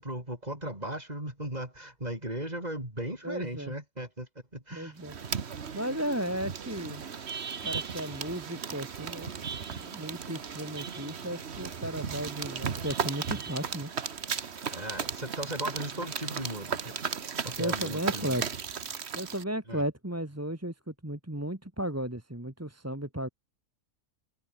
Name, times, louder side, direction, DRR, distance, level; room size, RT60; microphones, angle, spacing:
voice 1, 0.0-5.0 14.7-17.0 17.4-18.5 19.7-19.8, right 1 dB, 25° right, 6.9 m, -37 dB
voice 2, 3.2-3.7 4.7-5.1 5.7-7.0 7.6-9.3 9.6-13.9 17.6-18.4 19.2-23.3, right 1 dB, 10° right, 1.9 m, -35 dB
sound 1, 5.0-19.4, right 6 dB, 45° right, 1.4 m, -36 dB
omnidirectional pair, 1.6 m